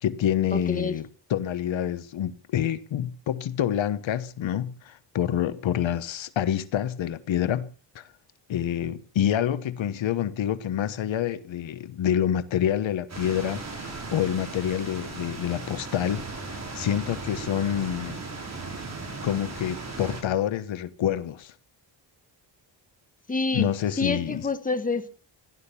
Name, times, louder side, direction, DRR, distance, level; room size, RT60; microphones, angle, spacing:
voice 1, 0.0-7.7 7.9-8.1 8.5-18.2 19.2-21.5 23.5-24.5, left 10 dB, 85° left, 1.2 m, -27 dB
voice 2, 0.5-0.9 23.3-23.7 24.0-25.1, left 3 dB, 20° left, 1.7 m, -27 dB
sound 1, 13.1-20.2, right 3 dB, 35° right, 5.5 m, -37 dB
16.5 x 12.0 x 6.9 m
wide cardioid pair, 150°, 45 cm